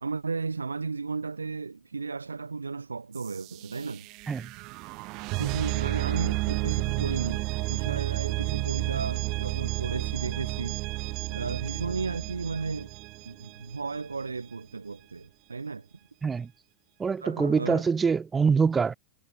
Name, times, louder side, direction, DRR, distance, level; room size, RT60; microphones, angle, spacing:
voice 1, 0.0-4.1 5.4-12.9 13.2-15.9 17.2-17.8, right 4 dB, 75° right, 1.1 m, -34 dB
sound 1, 3.1-14.0, right 24 dB, 40° right, 1.4 m, -31 dB
voice 2, 17.0-18.9, right 5 dB, 15° right, 0.6 m, -24 dB
figure-of-eight pair, 90°, 0 cm